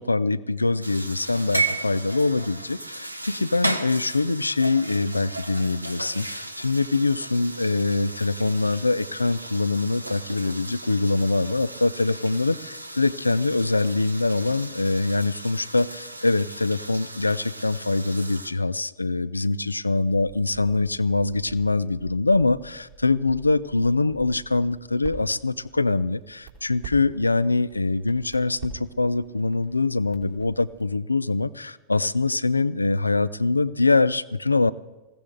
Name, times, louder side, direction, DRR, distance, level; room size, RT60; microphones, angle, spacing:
voice 1, 0.0-34.7, left 3 dB, 80° left, 17 dB, 0.4 m, -24 dB
sound 1, 0.8-18.5, right 2 dB, 85° right, 0.7 m, -35 dB
Crackle, 20.1-30.9, right 6 dB, 60° right, 3.2 m, -45 dB
20.5 x 15.5 x 3.8 m, 1.1 s
figure-of-eight pair, 90°, 0 cm